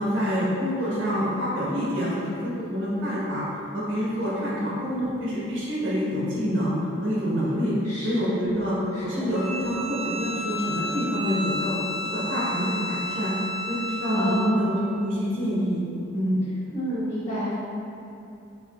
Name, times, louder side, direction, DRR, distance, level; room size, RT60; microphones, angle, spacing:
voice 1, 0.0-3.4 3.7-6.7 7.0-7.7 8.0-8.7 9.0-11.8 12.1-13.3 13.7-15.8 16.1-16.4, equal, 75° right, -9 dB, 1.4 m, -27 dB
voice 2, 7.8-8.6 8.9-9.3 9.7-9.9 14.1-14.7 15.3-15.6 16.7-17.5, right 1 dB, 15° left, -15 dB, 1.2 m, -30 dB
Bowed string instrument, 9.3-14.6, equal, 70° left, 0.8 m, -32 dB
6.0 x 3.1 x 2.5 m, 2.7 s
head